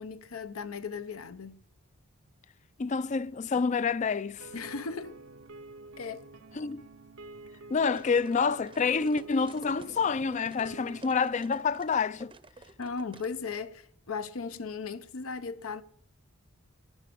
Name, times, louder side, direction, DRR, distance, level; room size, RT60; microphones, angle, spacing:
voice 1, 0.0-1.6 4.5-5.2 6.0-6.3 12.8-15.8, left 5 dB, 80° left, 0.7 m, -37 dB
voice 2, 2.8-4.5 6.5-6.8 7.7-12.3, left 5 dB, 35° left, 0.4 m, -28 dB
sound 1, 4.4-11.0, right 2 dB, 65° right, 0.6 m, -49 dB
sound 2, 7.9-13.3, right 3 dB, 25° right, 0.6 m, -51 dB
11.5 x 10.0 x 5.2 m
head